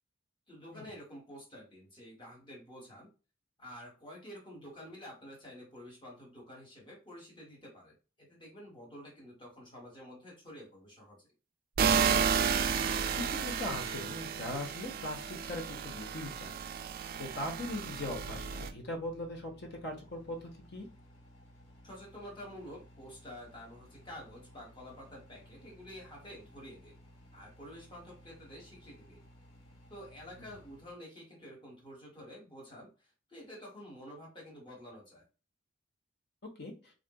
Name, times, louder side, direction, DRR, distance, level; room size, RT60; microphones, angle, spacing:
voice 1, 0.5-3.1 3.6-11.3 21.8-26.9 27.3-29.2 29.9-35.2, equal, 25° left, -4 dB, 1.3 m, -49 dB
sound 1, 11.8-18.7, right 7 dB, 45° right, 0.3 m, -32 dB
voice 2, 13.1-16.7 17.2-20.9 36.6-36.7, left 1 dB, 55° left, 1 dB, 0.9 m, -40 dB
Microwave oven, 16.2-31.0, equal, 85° left, 1.1 m, -58 dB
3.8 x 2.5 x 2.2 m, 0.33 s
head